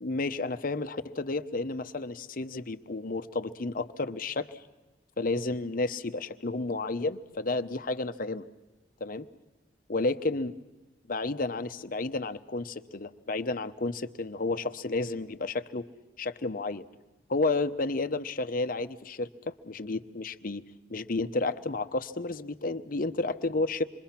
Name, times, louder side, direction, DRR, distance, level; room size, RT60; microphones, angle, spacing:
voice 1, 0.0-4.6 5.2-8.4 9.0-9.3 9.9-10.5 11.1-15.9 16.2-16.8 17.3-20.6 20.9-23.8, left 3 dB, 50° left, 9 dB, 0.9 m, -31 dB
27.0 x 23.0 x 5.9 m, 1.1 s
head